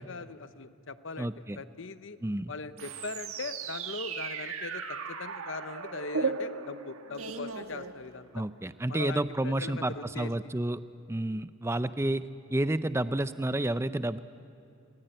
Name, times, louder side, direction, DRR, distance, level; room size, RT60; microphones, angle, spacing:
voice 1, 0.0-2.2 2.5-8.4 8.9-10.5 11.8-11.9, left 3 dB, 60° left, 12 dB, 0.8 m, -41 dB
voice 2, 1.2-1.6 2.2-2.5 8.3-10.8 11.1-12.2 12.5-14.2, right 1 dB, 10° right, 13 dB, 0.5 m, -30 dB
sound 1, 2.8-8.4, right 5 dB, 75° right, 1.6 m, -36 dB
25.0 x 21.0 x 9.0 m, 2.6 s
head